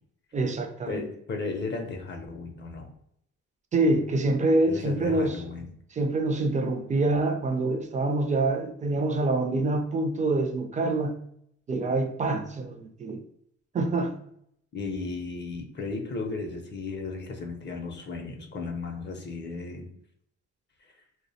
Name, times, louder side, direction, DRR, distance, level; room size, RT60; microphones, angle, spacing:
voice 1, 0.3-1.1 3.7-5.4 5.9-11.2 11.7-13.2 13.7-14.1, right 2 dB, 25° right, 0.4 m, -26 dB
voice 2, 0.9-2.9 4.6-5.7 14.7-19.9, left 3 dB, 35° left, 0.5 m, -35 dB
2.4 x 2.0 x 2.6 m
cardioid pair, 90°, 30 cm